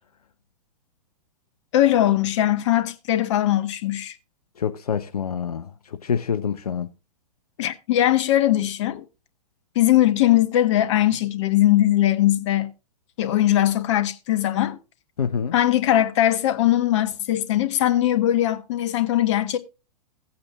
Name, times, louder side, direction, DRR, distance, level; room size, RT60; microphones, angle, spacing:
voice 1, 1.7-4.2 7.6-9.0 9.7-12.7 13.2-14.8 15.5-19.6, left 13 dB, 45° left, 1.1 m, -20 dB
voice 2, 4.6-6.9 15.2-15.6, left 7 dB, 70° left, 0.7 m, -26 dB
16.0 x 8.7 x 2.3 m
figure-of-eight pair, 110°, 20 cm